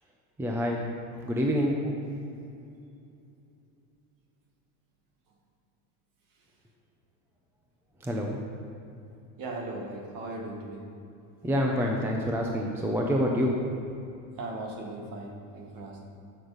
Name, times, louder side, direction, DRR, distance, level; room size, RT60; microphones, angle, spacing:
voice 1, 0.4-0.8 1.2-1.7 8.0-8.4 11.4-13.5, equal, 5° right, 0 dB, 0.7 m, -27 dB
voice 2, 9.4-10.8 14.4-16.1, right 2 dB, 45° right, 0 dB, 2.0 m, -38 dB
12.0 x 6.4 x 5.1 m, 2.7 s
supercardioid pair, 145°, 44 cm